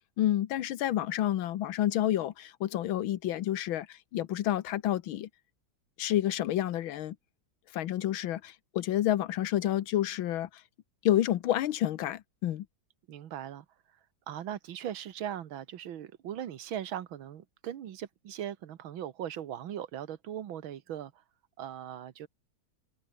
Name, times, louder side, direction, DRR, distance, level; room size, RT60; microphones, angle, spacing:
voice 1, 0.2-5.3 6.0-7.2 7.7-10.5 11.0-12.7, left 12 dB, 90° left, 1.7 m, -29 dB
voice 2, 13.1-13.7 14.3-21.1 21.6-22.3, right 10 dB, 90° right, 2.0 m, -39 dB
omnidirectional pair, 2.1 m